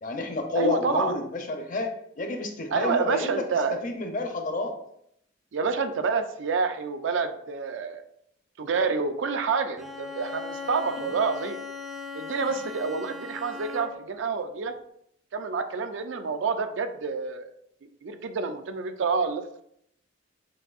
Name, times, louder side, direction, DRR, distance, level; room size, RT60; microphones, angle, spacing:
voice 1, 0.0-3.4 3.8-4.7 11.0-11.1, left 2 dB, 45° left, 5 dB, 0.6 m, -30 dB
voice 2, 0.6-1.1 2.7-3.8 5.5-8.0 8.6-11.6 12.1-14.7 15.3-17.5 17.8-19.6, right 4 dB, 70° right, 8 dB, 0.4 m, -28 dB
Bowed string instrument, 9.8-14.2, left 4 dB, ahead, 0.3 m, -38 dB
6.1 x 2.6 x 2.4 m, 0.73 s
head